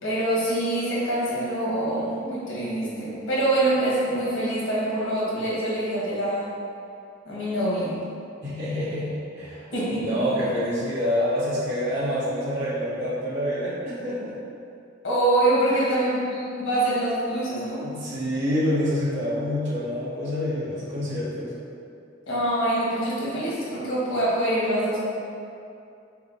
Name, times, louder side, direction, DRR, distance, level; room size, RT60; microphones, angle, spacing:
voice 1, 0.0-6.5 7.2-8.0 9.7-10.4 15.0-17.8 22.3-25.0, right 1 dB, 85° left, -7 dB, 1.4 m, -25 dB
voice 2, 8.4-14.4 15.7-16.0 17.8-21.5, equal, 65° right, -10 dB, 1.3 m, -27 dB
6.0 x 2.2 x 2.9 m, 2.6 s
head